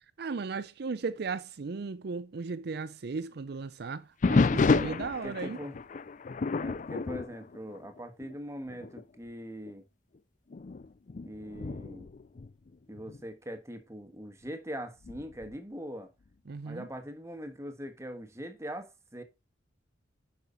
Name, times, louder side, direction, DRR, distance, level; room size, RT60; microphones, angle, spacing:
voice 1, 0.2-5.6 16.5-16.9, right 4 dB, 60° right, 0.5 m, -36 dB
sound 1, 4.2-8.4 8.7-9.0 9.7-9.8 10.5-13.2 15.0-15.6, left 4 dB, 45° left, 0.4 m, -30 dB
voice 2, 4.6-4.9 5.2-5.8 6.6-9.9 11.2-12.1 12.9-16.1 16.7-19.2, equal, 15° right, 1.4 m, -42 dB
10.5 x 5.8 x 3.9 m
head